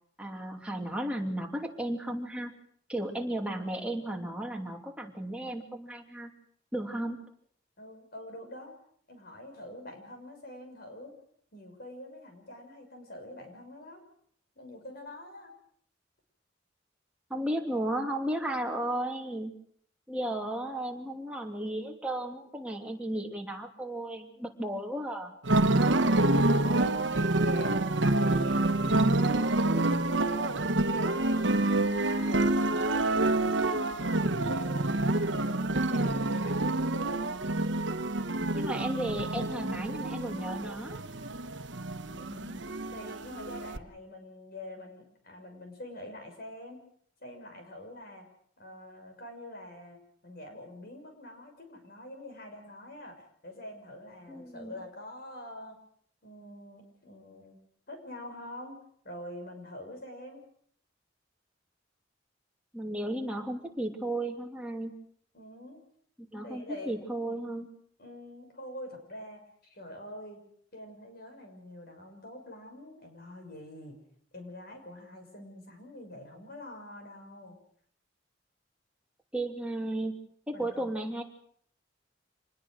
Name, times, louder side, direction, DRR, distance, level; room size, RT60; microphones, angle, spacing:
voice 1, 0.2-2.5 2.9-6.3 6.7-7.2 17.3-19.5 20.1-25.3 38.5-41.0 54.3-54.7 62.7-64.9 66.2-67.7 79.3-80.1 80.5-81.2, right 1 dB, 5° right, 1 dB, 2.8 m, -34 dB
voice 2, 6.8-7.1 7.8-8.8 9.1-11.1 11.5-14.0 14.6-15.5 26.0-30.6 30.9-34.9 35.3-37.3 42.1-42.6 42.9-46.8 47.2-48.3 48.6-55.8 56.2-57.6 57.9-58.8 59.0-60.4 65.3-65.8 66.4-66.9 68.0-70.4 70.7-74.0 74.3-77.6 80.5-80.9, left 1 dB, 55° left, 4 dB, 6.3 m, -45 dB
sound 1, 25.4-43.8, right 2 dB, 70° right, 1.2 m, -27 dB
26.5 x 20.5 x 6.4 m, 0.64 s
head